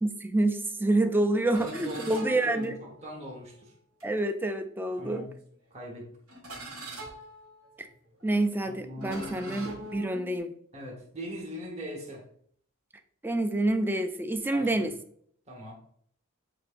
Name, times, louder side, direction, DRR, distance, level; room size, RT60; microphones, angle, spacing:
voice 1, 0.0-2.8 4.0-5.3 7.8-7.9 8.2-10.5 13.2-14.9, right 2 dB, 10° right, 7 dB, 0.4 m, -27 dB
voice 2, 1.5-3.7 5.0-5.3 5.7-6.1 8.6-9.8 10.7-12.2 14.5-14.9 15.5-15.7, equal, 30° right, -2 dB, 1.2 m, -41 dB
sound 1, 1.5-3.2 4.0-4.2 5.0-5.5 6.3-10.4, right 2 dB, 85° right, 1.7 m, -44 dB
7.4 x 2.8 x 2.5 m, 0.62 s
head